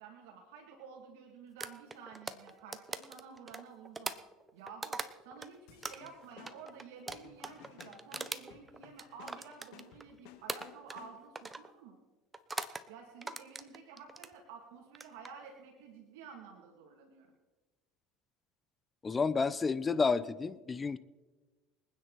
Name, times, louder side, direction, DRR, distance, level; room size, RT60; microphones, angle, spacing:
voice 1, 0.0-4.1 4.5-12.0 12.9-17.3, right 6 dB, 80° right, 2 dB, 2.4 m, -52 dB
sound 1, 1.6-5.5 5.8-10.1 10.5-11.1 11.4-11.7 12.3-12.9 13.2-14.3 14.9-15.3, right 3 dB, 15° right, 0.9 m, -41 dB
sound 2, 5.7-11.4, left 10 dB, 70° left, 1.9 m, -57 dB
voice 2, 19.0-21.0, left 4 dB, 20° left, 16 dB, 0.6 m, -30 dB
25.0 x 9.6 x 4.2 m, 1.3 s
supercardioid pair, 110°, 0 cm